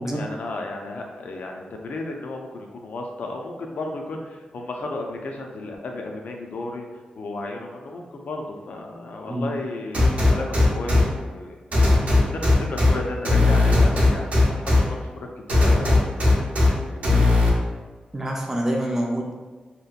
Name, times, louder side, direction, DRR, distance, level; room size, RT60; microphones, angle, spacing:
voice 1, 0.0-6.9 7.2-17.2 17.5-17.7, left 2 dB, 70° left, 2 dB, 0.4 m, -34 dB
sound 1, 9.9-11.0 11.7-12.9 13.3-14.8 15.5-16.7 17.0-17.5, left 2 dB, 60° right, 0.6 m, -17 dB
voice 2, 18.1-19.3, right 1 dB, 15° right, -1 dB, 0.3 m, -26 dB
2.8 x 2.2 x 2.4 m, 1.3 s
wide cardioid pair, 120°, 3 cm